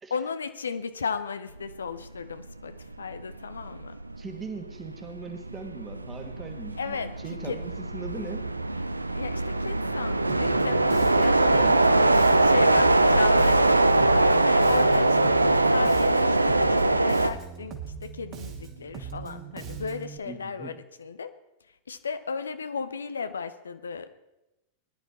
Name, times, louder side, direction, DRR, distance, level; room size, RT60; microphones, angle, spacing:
voice 1, 0.1-3.9 6.8-7.1 7.5-7.6 9.1-11.7 12.4-21.3 21.9-24.1, left 5 dB, 70° left, 11 dB, 0.7 m, -35 dB
sound 1, 2.3-2.5 2.9-17.3, right 2 dB, 85° right, 0.5 m, -22 dB
voice 2, 4.2-8.5 11.2-12.4 20.3-20.7, right 4 dB, 20° right, 5 dB, 1.9 m, -40 dB
Bass guitar, 10.3-20.2, right 7 dB, 35° right, 2.3 m, -40 dB
20.5 x 11.0 x 4.2 m, 0.94 s
figure-of-eight pair, 90°, 0 cm